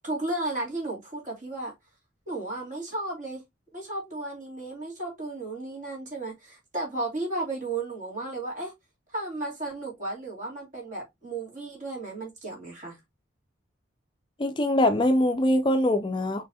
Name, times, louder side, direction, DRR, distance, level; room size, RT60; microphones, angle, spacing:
voice 1, 0.0-1.7 2.3-3.4 3.7-8.7 9.1-13.0, right 2 dB, 40° right, 2.3 m, -34 dB
voice 2, 14.4-16.4, left 1 dB, 25° left, 0.4 m, -23 dB
4.5 x 3.2 x 2.8 m
head